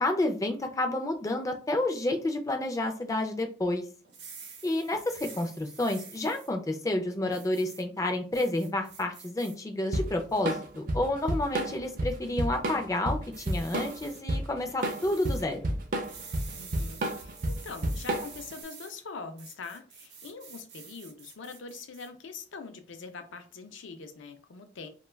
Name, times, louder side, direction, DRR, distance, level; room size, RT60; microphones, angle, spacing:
voice 1, 0.0-3.8 4.6-15.6, left 1 dB, 15° left, 5 dB, 0.3 m, -30 dB
sound 1, 4.0-6.5 7.3-7.8 8.3-9.6 10.0-10.6 11.2-11.5 13.3-14.2 14.8-15.4 16.0-18.9 19.4-22.1, right 6 dB, 70° right, 0.8 m, -48 dB
Drum kit / Drum, 9.9-18.5, right 1 dB, 45° right, 0.4 m, -31 dB
voice 2, 16.5-24.9, left 4 dB, 80° left, 8 dB, 0.5 m, -43 dB
2.2 x 2.2 x 3.2 m, 0.39 s
head